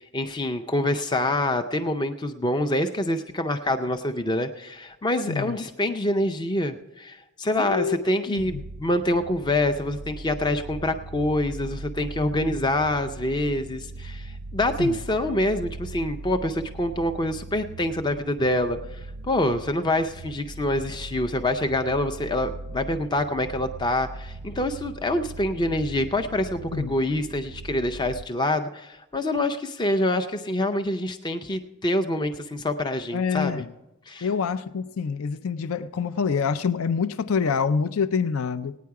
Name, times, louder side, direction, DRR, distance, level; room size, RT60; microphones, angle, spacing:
voice 1, 0.0-33.6 34.1-34.3, left 1 dB, 20° left, 8 dB, 0.4 m, -26 dB
voice 2, 7.6-8.6 14.8-15.0 26.7-26.9 33.1-33.7 34.2-38.8, left 6 dB, 75° left, 12 dB, 0.5 m, -26 dB
sound 1, 8.4-28.2, right 3 dB, 45° right, 0.3 m, -40 dB
17.5 x 9.4 x 4.7 m, 1.0 s
head